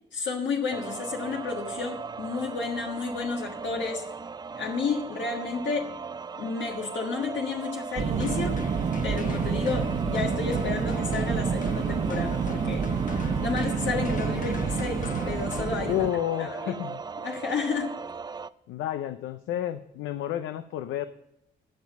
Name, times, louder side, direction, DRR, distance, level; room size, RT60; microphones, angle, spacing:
voice 1, 0.1-4.1 4.5-5.9 6.4-8.6 9.0-12.9 13.4-16.0 16.4-16.7 17.2-17.9, left 5 dB, 65° left, 1 dB, 1.5 m, -31 dB
sound 1, 0.7-18.5, right 5 dB, 20° right, 0.4 m, -38 dB
sound 2, 8.0-16.1, right 6 dB, 40° right, 1.0 m, -28 dB
sound 3, 8.2-16.3, left 5 dB, 40° left, 1.1 m, -41 dB
voice 2, 15.8-17.0 18.7-21.1, left 12 dB, 90° left, 11 dB, 0.6 m, -30 dB
13.0 x 7.4 x 5.3 m, 0.82 s
cardioid pair, 90°, 20 cm